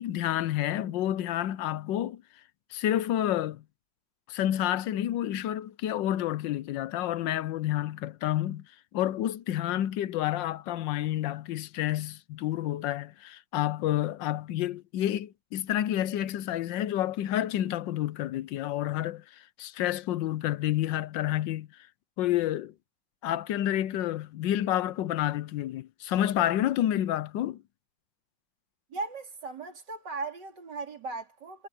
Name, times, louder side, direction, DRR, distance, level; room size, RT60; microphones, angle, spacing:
voice 1, 0.0-2.2 2.7-3.6 4.3-8.6 8.9-19.2 19.6-21.7 22.2-22.7 23.2-27.6, left 12 dB, 80° left, 1.4 m, -29 dB
voice 2, 28.9-31.7, right 3 dB, 70° right, 3.6 m, -37 dB
omnidirectional pair, 1.9 m